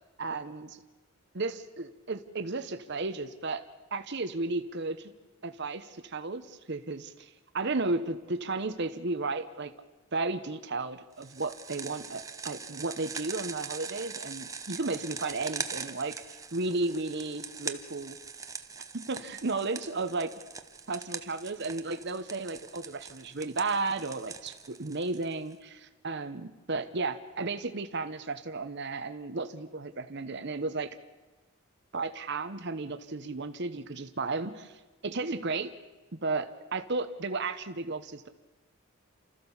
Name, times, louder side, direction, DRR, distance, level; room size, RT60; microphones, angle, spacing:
voice 1, 0.2-0.8 1.3-3.6 3.9-5.1 5.4-9.7 10.1-16.2 16.5-18.2 18.9-20.3 20.9-30.9 31.9-34.7 35.0-35.7 36.1-38.3, right 3 dB, 50° right, 9 dB, 1.0 m, -34 dB
sound 1, 11.2-25.5, right 5 dB, 15° right, 0.8 m, -42 dB
29.5 x 14.0 x 7.2 m, 1.2 s
head